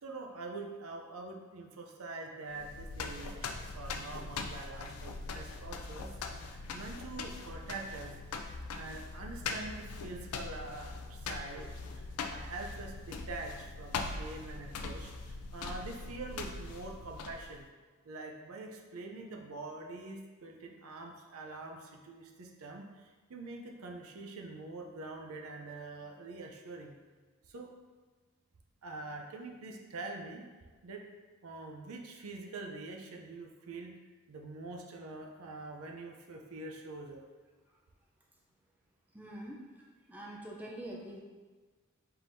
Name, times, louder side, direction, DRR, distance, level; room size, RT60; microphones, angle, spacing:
voice 1, 0.0-8.2 8.7-12.0 12.3-17.7 18.0-27.0 27.5-27.7 28.8-30.5 30.8-31.0 31.4-34.0 34.3-37.2, right 3 dB, 80° right, 2 dB, 0.5 m, -45 dB
sound 1, 2.5-17.6, left 4 dB, 85° left, 0.4 m, -41 dB
voice 2, 39.1-41.2, right 1 dB, 5° right, -3 dB, 0.4 m, -45 dB
4.5 x 3.6 x 2.6 m, 1.4 s
head